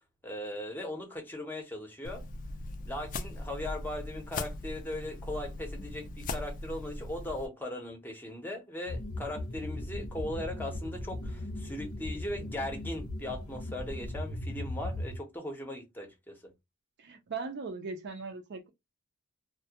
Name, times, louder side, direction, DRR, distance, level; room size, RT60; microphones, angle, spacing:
voice 1, 0.2-2.3 2.9-16.5, left 1 dB, 10° left, 0.6 m, -39 dB
sound 1, 2.0-7.5, left 2 dB, 40° left, 0.3 m, -39 dB
sound 2, 8.9-15.2, left 1 dB, 75° left, 0.7 m, -38 dB
voice 2, 17.0-18.7, right 4 dB, 50° right, 0.5 m, -39 dB
2.2 x 2.0 x 2.7 m
head